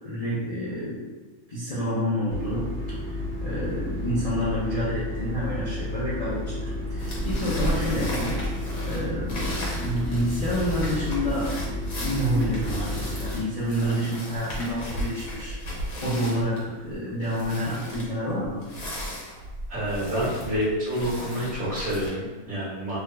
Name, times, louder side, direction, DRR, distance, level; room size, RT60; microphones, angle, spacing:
voice 1, 0.0-1.0 1.5-2.7 3.0-15.6 16.0-18.6, equal, 45° left, -10 dB, 0.4 m, -29 dB
sound 1, 2.3-13.3, left 1 dB, 75° right, 0.5 m, -32 dB
sound 2, 7.0-22.1, equal, 70° left, 1.3 m, -35 dB
voice 2, 19.7-23.0, equal, 5° right, -10 dB, 1.0 m, -28 dB
2.7 x 2.3 x 3.2 m, 1.3 s
omnidirectional pair, 1.6 m